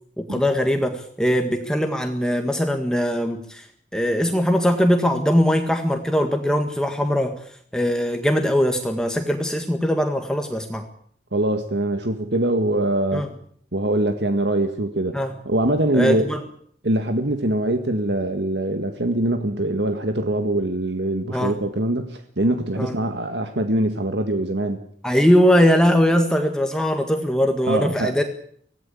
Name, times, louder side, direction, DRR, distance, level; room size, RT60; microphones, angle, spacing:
voice 1, 0.2-3.7 3.9-7.4 7.7-10.9 13.1-13.3 15.1-15.3 15.9-16.4 21.3-21.5 22.8-22.9 25.0-28.2, equal, 5° left, 4 dB, 1.7 m, -21 dB
voice 2, 11.3-13.3 13.7-16.3 16.8-24.8 27.7-28.1, right 1 dB, 75° right, 7 dB, 1.8 m, -23 dB
25.0 x 17.5 x 8.5 m, 0.63 s
head